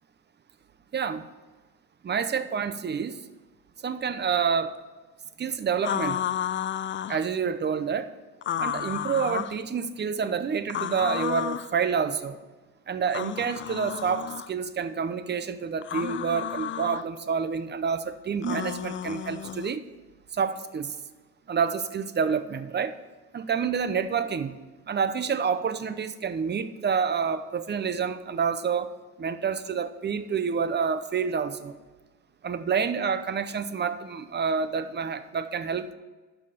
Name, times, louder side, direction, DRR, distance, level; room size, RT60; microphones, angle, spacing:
voice 1, 0.9-1.3 2.0-3.2 3.8-4.8 5.4-6.2 7.1-8.1 8.6-12.4 12.9-19.8 20.3-21.0 21.5-23.0 23.3-24.6 24.9-31.8 32.4-35.9, right 6 dB, 35° right, 11 dB, 0.8 m, -28 dB
sound 1, 5.8-7.2 8.4-9.6 10.7-11.7 13.1-14.5 15.8-17.0 18.4-19.7, left 10 dB, 40° left, 0.4 m, -32 dB
12.0 x 4.7 x 6.5 m, 1.3 s
cardioid pair, 110°, 30 cm